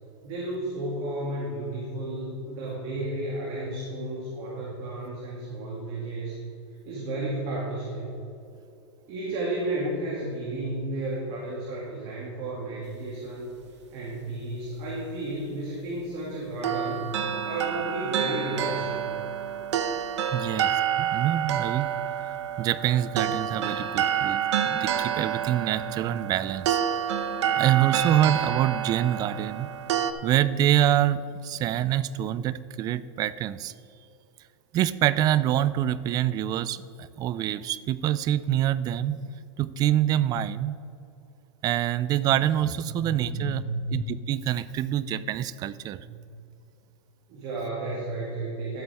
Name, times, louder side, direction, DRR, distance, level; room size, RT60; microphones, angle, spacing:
voice 1, 0.2-6.4 6.9-8.2 9.1-13.5 13.9-17.1 17.4-19.1 42.9-43.9 45.9-46.2 47.3-48.8, right 2 dB, 45° right, -5 dB, 2.5 m, -32 dB
sound 1, 16.6-30.1, right 9 dB, 85° right, 0.8 m, -28 dB
voice 2, 20.3-21.9 22.6-24.4 24.7-26.8 27.6-29.7 30.2-33.7 34.7-39.2 39.6-40.8 41.6-43.6 43.9-46.0, right 11 dB, 25° right, 16 dB, 0.3 m, -26 dB
12.5 x 8.3 x 3.5 m, 2.7 s
supercardioid pair, 135°, 15 cm